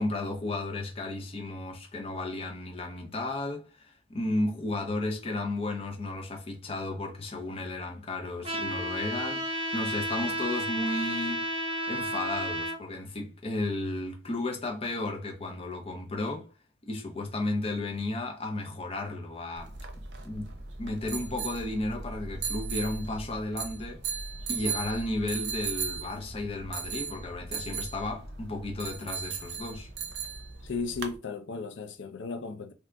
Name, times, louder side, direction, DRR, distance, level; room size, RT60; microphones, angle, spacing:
voice 1, 0.0-11.5 11.9-16.5 16.8-19.8 20.2-20.5 20.8-24.0 24.5-29.9, left 2 dB, 30° left, 0.7 m, -33 dB
Trumpet, 8.4-12.8, right 1 dB, 30° right, 0.7 m, -32 dB
sound 1, 19.6-31.2, right 6 dB, 70° right, 0.6 m, -37 dB
voice 2, 30.6-32.7, left 4 dB, 90° left, 0.5 m, -35 dB
2.7 x 2.4 x 3.4 m
head